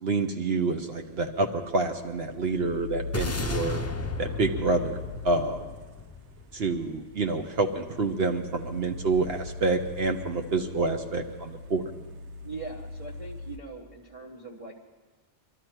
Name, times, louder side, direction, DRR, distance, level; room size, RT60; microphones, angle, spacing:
voice 1, 0.0-3.8 4.2-5.0 5.2-5.7 6.5-11.9, right 3 dB, 65° right, 4 dB, 1.1 m, -28 dB
sound 1, 0.7-13.6, left 3 dB, 85° right, 1.0 m, -40 dB
sound 2, 3.1-7.6, left 3 dB, 20° left, 0.4 m, -35 dB
voice 2, 12.4-14.7, right 4 dB, 35° right, -4 dB, 1.2 m, -41 dB
23.0 x 13.0 x 4.5 m, 1.3 s
omnidirectional pair, 1.1 m